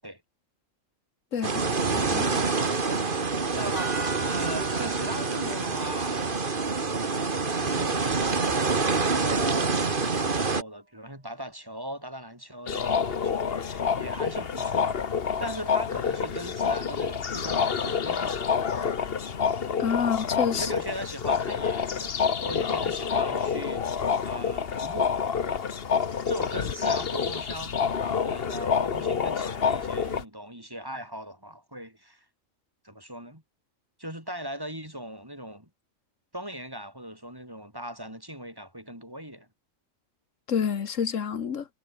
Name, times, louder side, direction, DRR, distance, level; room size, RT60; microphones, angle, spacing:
voice 1, 1.3-2.4 3.5-4.0 4.3-6.3 7.0-15.0 15.4-18.5 20.0-20.1 20.5-25.2 26.2-32.2 32.8-33.4 34.0-35.7 36.3-39.5, equal, 15° right, 6.5 m, -39 dB
sound 1, 1.4-10.6, right 4 dB, 40° right, 1.9 m, -26 dB
voice 2, 1.9-2.4 19.8-20.7 40.5-41.7, left 7 dB, 85° left, 1.7 m, -28 dB
sound 2, 3.8-8.7, right 3 dB, 70° right, 3.4 m, -41 dB
sound 3, 12.7-30.2, left 6 dB, 50° left, 1.3 m, -28 dB
omnidirectional pair, 1.3 m